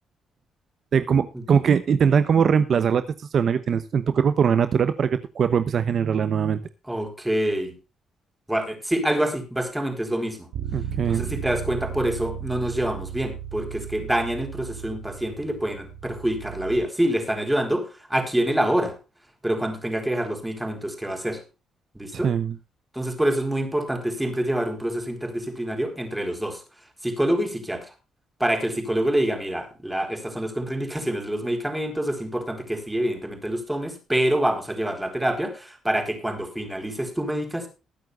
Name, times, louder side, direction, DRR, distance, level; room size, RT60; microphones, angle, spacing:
voice 1, 0.9-6.6 10.7-11.3 22.1-22.6, right 7 dB, 55° right, 12 dB, 1.0 m, -21 dB
voice 2, 6.9-7.7 8.5-10.5 11.1-18.9 19.4-21.4 21.9-22.3 22.9-26.6 27.0-27.9 28.4-37.7, right 1 dB, 5° right, 6 dB, 4.4 m, -26 dB
Bass guitar, 10.5-16.8, right 9 dB, 85° right, 3.6 m, -35 dB
21.0 x 9.2 x 2.5 m, 0.30 s
cardioid pair, 90°, 0 cm